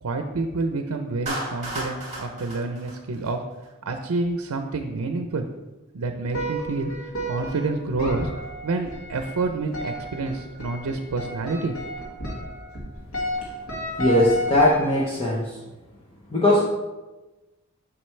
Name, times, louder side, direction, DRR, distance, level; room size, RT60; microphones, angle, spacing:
voice 1, 0.0-3.4 3.9-5.5 5.9-8.3 8.6-11.7, right 3 dB, 85° right, 6 dB, 0.6 m, -28 dB
Clapping, 1.3-3.7, right 1 dB, 30° right, 2.4 m, -33 dB
sound 1, 6.3-15.3, left 1 dB, 80° left, 1.9 m, -33 dB
voice 2, 14.0-15.6 16.3-16.6, left 1 dB, 25° left, -5 dB, 0.8 m, -20 dB
7.7 x 6.0 x 3.2 m, 1.1 s
head